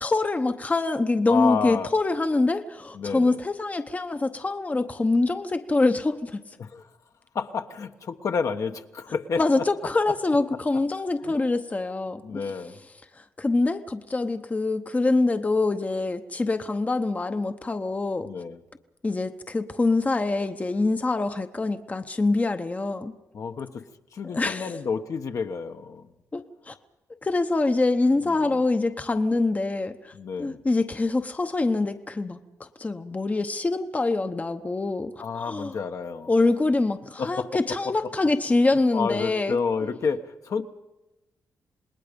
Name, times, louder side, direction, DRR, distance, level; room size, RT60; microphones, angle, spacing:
voice 1, 0.0-6.4 9.4-12.5 13.2-18.3 19.0-23.1 24.2-24.7 26.3-26.8 27.2-30.1 30.4-35.7 36.3-39.6, left 3 dB, 25° left, 8 dB, 0.9 m, -25 dB
voice 2, 1.3-1.9 2.9-3.4 6.6-6.9 7.3-9.6 11.2-11.4 12.2-12.8 18.2-18.6 23.3-23.8 24.1-26.1 28.2-28.6 30.1-30.6 35.2-36.3 37.2-37.5 38.9-40.6, left 5 dB, 60° left, 6 dB, 1.2 m, -30 dB
27.5 x 20.0 x 5.3 m, 1.0 s
cardioid pair, 90°, 6 cm